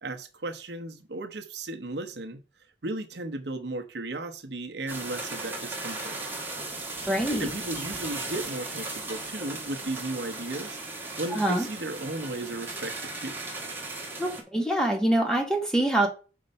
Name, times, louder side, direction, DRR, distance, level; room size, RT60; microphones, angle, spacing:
voice 1, 0.0-2.4 2.8-6.2 7.4-13.4, right 2 dB, 70° right, 0.9 m, -35 dB
sound 1, 4.9-14.4, right 2 dB, 10° right, 1.5 m, -37 dB
voice 2, 7.1-7.5 11.3-11.7 14.2-16.1, right 1 dB, 5° left, 1.2 m, -25 dB
5.5 x 4.7 x 5.2 m
head